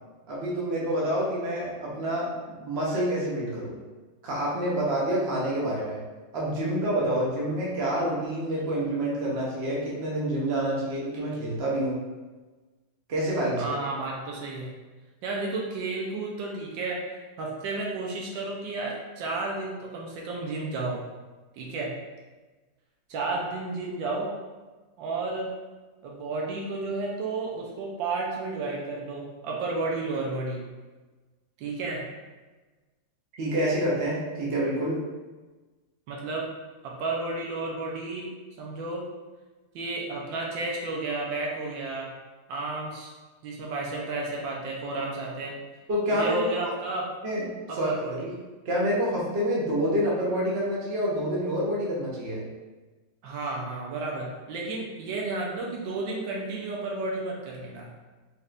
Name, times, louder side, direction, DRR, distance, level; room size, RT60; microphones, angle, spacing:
voice 1, 0.3-3.7 4.2-6.0 6.3-12.0 13.1-13.6 33.4-35.0 45.9-46.4 47.2-47.5 47.8-48.3 48.6-52.4, right 1 dB, 45° right, -5 dB, 1.0 m, -27 dB
voice 2, 13.6-14.7 15.2-21.0 21.5-21.9 23.1-24.3 25.0-25.5 26.0-30.6 31.6-32.0 36.1-36.5 36.8-38.3 38.6-39.0 39.7-42.1 42.5-43.1 43.4-45.6 46.1-47.1 47.7-48.2 53.2-57.9, right 3 dB, 85° right, -2 dB, 1.4 m, -32 dB
4.2 x 3.4 x 2.4 m, 1.3 s
omnidirectional pair, 2.0 m